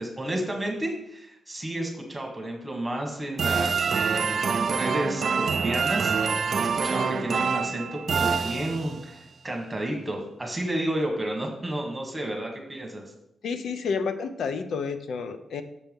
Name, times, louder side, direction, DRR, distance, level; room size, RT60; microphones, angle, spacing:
voice 1, 0.0-13.0, right 1 dB, 10° right, 1 dB, 1.5 m, -32 dB
sound 1, 3.4-9.1, right 5 dB, 55° right, 0.4 m, -26 dB
voice 2, 13.4-15.6, left 5 dB, 80° left, 9 dB, 0.6 m, -30 dB
6.9 x 4.6 x 5.3 m, 0.81 s
wide cardioid pair, 140°, 0 cm